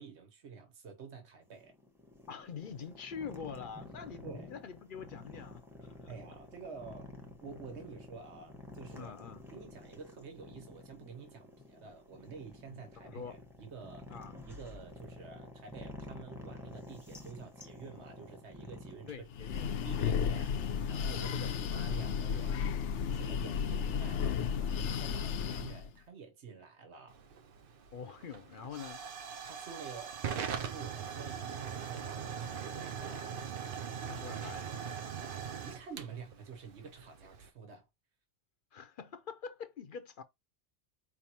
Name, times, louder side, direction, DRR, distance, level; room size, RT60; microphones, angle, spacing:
voice 1, 0.0-1.7 4.2-4.5 6.1-7.1 7.4-9.2 9.5-14.1 14.5-19.1 19.6-20.5 20.9-22.6 23.1-27.2 29.4-33.4 35.3-37.9, right 5 dB, 75° right, 1.5 m, -49 dB
sound 1, 1.4-19.1, left 2 dB, ahead, 1.1 m, -50 dB
voice 2, 2.3-6.1 8.9-9.4 12.7-13.3 14.1-14.3 19.1-20.0 21.2-21.8 27.9-29.0 34.1-34.8 38.7-40.2, left 6 dB, 55° left, 0.7 m, -45 dB
Breathing, 19.3-25.9, left 7 dB, 85° left, 0.9 m, -33 dB
Hiss / Fire / Tick, 27.1-37.5, right 7 dB, 55° right, 0.8 m, -41 dB
4.7 x 3.4 x 2.9 m
omnidirectional pair, 1.2 m